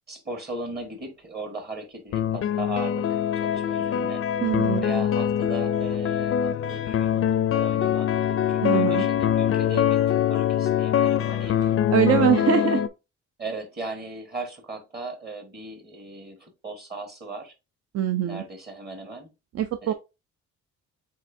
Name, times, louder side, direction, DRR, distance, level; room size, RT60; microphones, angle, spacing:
voice 1, 0.1-4.2 4.8-11.6 12.2-12.8 13.4-17.5 18.2-19.3 19.8-19.9, right 2 dB, 30° right, 1.5 m, -38 dB
sound 1, 2.1-12.9, left 9 dB, 45° left, 0.5 m, -23 dB
voice 2, 4.4-4.8 8.6-9.1 11.9-12.8 17.9-18.4 19.5-19.9, right 9 dB, 55° right, 0.5 m, -23 dB
7.5 x 2.7 x 2.7 m
cardioid pair, 90°, 30 cm